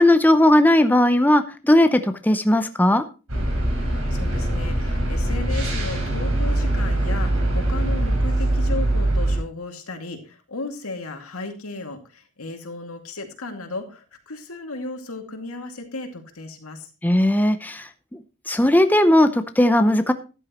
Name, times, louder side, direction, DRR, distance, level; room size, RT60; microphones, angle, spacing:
voice 1, 0.0-3.0 17.0-20.1, left 1 dB, 10° left, 8 dB, 0.7 m, -17 dB
sound 1, 3.3-9.4, right 1 dB, 70° right, 5.1 m, -22 dB
voice 2, 3.8-16.9, left 2 dB, 90° left, 5 dB, 2.3 m, -35 dB
13.5 x 11.0 x 3.0 m, 0.32 s
head